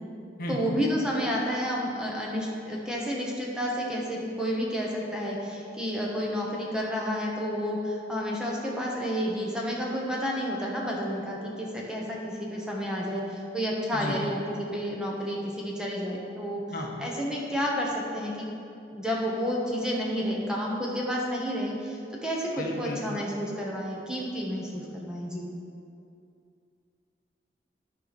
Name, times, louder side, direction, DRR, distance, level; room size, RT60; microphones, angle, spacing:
voice 1, 0.5-16.6 17.0-18.4 18.9-25.5, equal, 5° right, -3 dB, 1.1 m, -30 dB
voice 2, 22.6-23.0, left 1 dB, 50° left, 0 dB, 0.9 m, -34 dB
12.5 x 4.7 x 4.1 m, 2.5 s
head